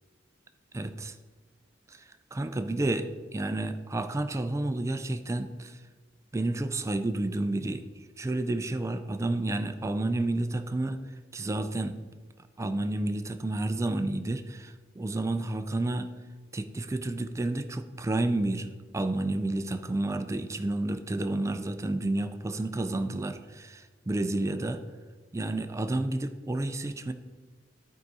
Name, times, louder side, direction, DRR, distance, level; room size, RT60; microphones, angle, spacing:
voice 1, 0.7-1.1 1.9-2.0 2.3-5.8 6.3-7.8 8.2-11.0 11.3-11.9 12.6-16.1 16.5-18.7 18.9-24.8 25.3-27.1, right 2 dB, 15° right, 9 dB, 0.3 m, -30 dB
12.0 x 4.8 x 4.0 m, 1.4 s
head